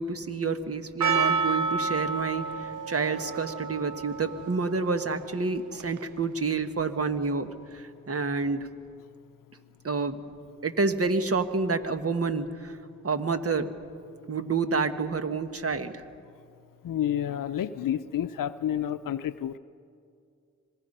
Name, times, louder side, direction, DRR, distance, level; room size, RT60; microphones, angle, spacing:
voice 1, 0.0-2.5 2.9-8.7 9.8-10.2 10.6-12.8 13.0-13.7 14.3-16.0, right 4 dB, 45° right, 9 dB, 1.5 m, -28 dB
Percussion, 1.0-6.2, right 4 dB, 70° right, 0.8 m, -31 dB
voice 2, 16.8-19.6, left 10 dB, 85° left, 12 dB, 0.6 m, -30 dB
26.5 x 19.5 x 5.5 m, 2.4 s
cardioid pair, 50°, 32 cm